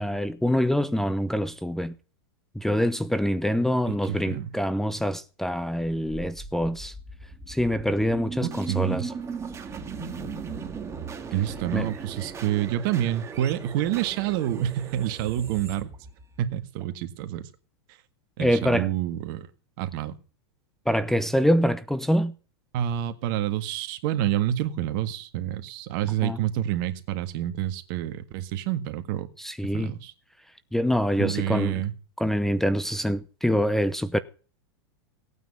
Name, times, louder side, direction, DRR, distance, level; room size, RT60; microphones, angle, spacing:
voice 1, 0.0-1.9 2.5-6.9 7.5-9.1 11.7-11.9 18.4-18.9 20.9-22.3 26.2-26.4 29.4-30.0 30.7-31.8 32.2-34.2, equal, 5° left, 0.7 m, -25 dB
sound 1, 6.0-16.8, right 5 dB, 20° right, 2.4 m, -38 dB
voice 2, 8.4-9.0 11.3-15.9 16.4-17.4 18.4-19.5 19.8-20.2 22.7-29.3 29.7-30.1 31.2-31.9, right 12 dB, 55° right, 1.8 m, -28 dB
17.5 x 9.3 x 5.5 m
hypercardioid pair, 120°, 14 cm